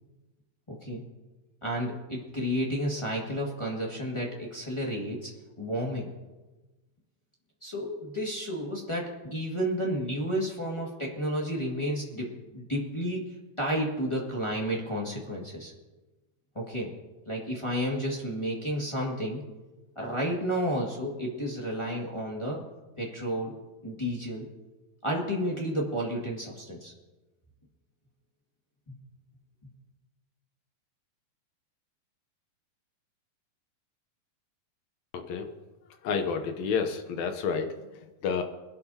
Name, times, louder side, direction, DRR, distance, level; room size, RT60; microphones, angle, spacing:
voice 1, 1.6-5.3 5.6-6.1 7.6-15.7 16.5-16.9 17.2-19.4 19.9-22.6 23.0-23.5 23.8-24.5 25.0-26.9 28.9-29.0, equal, 35° left, -3 dB, 0.4 m, -31 dB
voice 2, 35.1-35.4 36.0-37.7 38.2-38.4, left 6 dB, 80° left, 6 dB, 1.6 m, -29 dB
22.5 x 11.5 x 2.8 m, 1.1 s
omnidirectional pair, 4.4 m